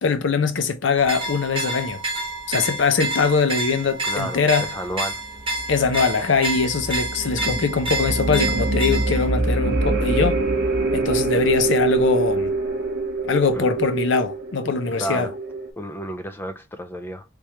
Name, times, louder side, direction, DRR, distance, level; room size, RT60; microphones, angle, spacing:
voice 1, 0.0-2.0 2.5-4.7 5.7-10.4 10.9-12.5 13.3-15.3, left 5 dB, 65° left, 0.5 m, -22 dB
sound 1, 1.0-9.3, right 1 dB, 25° right, 1.0 m, -29 dB
voice 2, 4.0-5.2 13.5-13.7 15.0-15.3 15.8-17.2, equal, 10° left, 0.4 m, -31 dB
sound 2, 5.4-15.7, right 3 dB, 55° right, 0.9 m, -25 dB
3.4 x 3.2 x 2.9 m
head